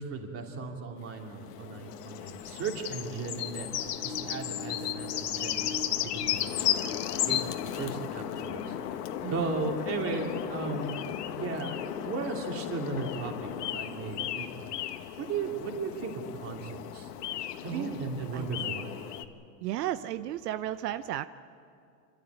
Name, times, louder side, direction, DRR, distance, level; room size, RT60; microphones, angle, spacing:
voice 1, 0.0-3.7 4.0-8.7 9.3-11.0 11.3-14.5 15.2-17.1 17.6-18.9, right 4 dB, 30° right, 2 dB, 2.9 m, -36 dB
sound 1, 1.0-19.3, left 11 dB, 80° left, 1.5 m, -35 dB
sound 2, 3.3-10.8, left 3 dB, 25° left, 2.8 m, -46 dB
voice 2, 17.7-18.0 18.3-18.7 19.6-21.3, right 13 dB, 85° right, 12 dB, 0.8 m, -34 dB
28.5 x 13.0 x 9.3 m, 2.4 s
supercardioid pair, 145°, 47 cm